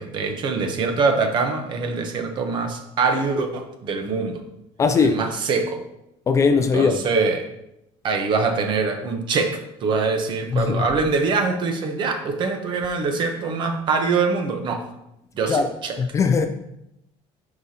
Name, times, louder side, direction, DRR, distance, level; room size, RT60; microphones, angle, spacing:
voice 1, 0.0-4.4 5.0-5.8 6.7-7.5 8.0-14.9 15.4-16.0, right 4 dB, 40° right, 0.9 m, -24 dB
voice 2, 4.8-5.2 6.3-7.0 10.5-10.8 15.5-15.7 16.0-16.5, left 5 dB, 25° left, 0.4 m, -19 dB
9.7 x 4.9 x 2.8 m
cardioid pair, 160°, 12 cm